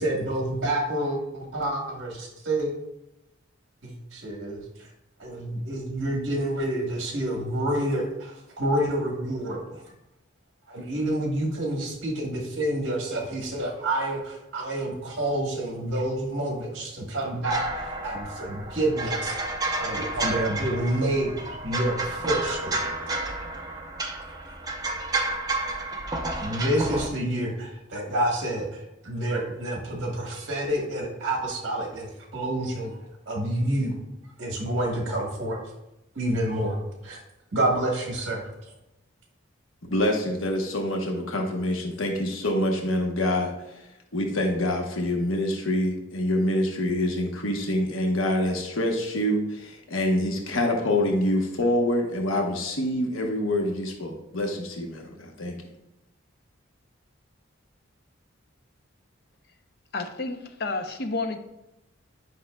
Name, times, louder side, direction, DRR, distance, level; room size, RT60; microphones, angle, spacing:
voice 1, 0.0-2.7 3.8-4.9 5.2-9.8 10.7-19.4 19.7-22.9 26.4-33.0 33.3-34.0 34.4-35.6 36.1-37.2 37.5-38.5, right 1 dB, 60° right, 0 dB, 1.2 m, -28 dB
sound 1, 17.4-27.1, right 2 dB, 20° right, 0.6 m, -31 dB
voice 2, 39.9-43.9 44.1-55.6, left 1 dB, 85° left, 1 dB, 1.0 m, -26 dB
voice 3, 59.9-61.4, left 3 dB, 50° left, 6 dB, 0.7 m, -30 dB
10.0 x 5.4 x 2.3 m, 0.93 s
head